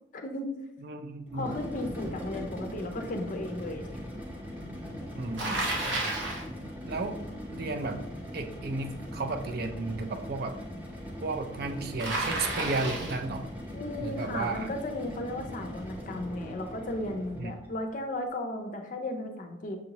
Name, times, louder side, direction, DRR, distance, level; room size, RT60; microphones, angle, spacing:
voice 1, 0.1-0.5 1.3-3.9 13.7-19.8, left 1 dB, 45° left, 4 dB, 0.5 m, -35 dB
voice 2, 0.8-1.5 5.1-5.6 6.8-7.2 7.5-8.0 8.3-10.6 11.2-13.4 14.0-14.7 17.4-17.5, right 3 dB, 55° right, 6 dB, 0.4 m, -33 dB
sound 1, 1.3-17.7, equal, 10° right, 0.8 m, -40 dB
Bicycle, 5.4-6.5 12.0-13.3, right 2 dB, 85° right, 1.1 m, -31 dB
6.1 x 2.7 x 2.9 m, 0.90 s
head